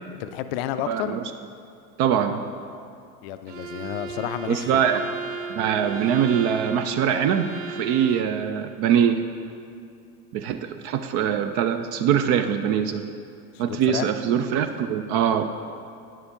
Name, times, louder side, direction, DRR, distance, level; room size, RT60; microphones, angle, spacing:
voice 1, 0.2-1.2 3.2-4.7 13.5-14.1, left 11 dB, 45° left, 10 dB, 0.4 m, -31 dB
voice 2, 0.9-1.2 2.0-2.5 4.5-5.0 5.5-9.2 10.3-13.0 13.6-15.4, right 8 dB, 35° right, 9 dB, 0.4 m, -23 dB
Bowed string instrument, 3.5-8.4, right 5 dB, 60° right, 0.7 m, -36 dB
11.0 x 10.0 x 2.7 m, 2.5 s
figure-of-eight pair, 80°, 45 cm